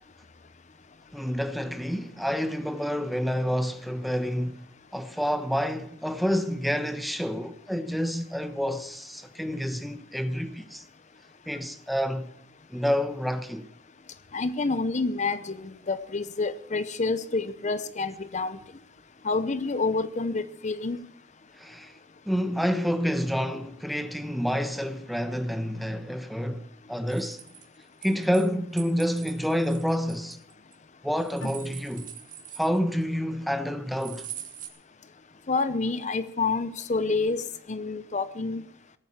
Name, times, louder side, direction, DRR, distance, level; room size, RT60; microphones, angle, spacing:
voice 1, 1.1-4.6 4.9-10.8 11.5-12.3 12.7-13.6 21.6-21.9 22.2-27.4 28.0-30.4 31.0-32.1 32.6-34.3, equal, ahead, 1.0 m, -28 dB
voice 2, 14.3-18.6 19.2-21.0 35.5-38.6, left 3 dB, 40° left, 0.7 m, -28 dB
sound 1, 27.1-28.5 28.8-30.7 31.2-33.0 34.0-34.7, right 11 dB, 45° right, 2.7 m, -43 dB
sound 2, 31.4-34.6, left 2 dB, 80° left, 2.8 m, -47 dB
18.0 x 9.2 x 7.3 m
head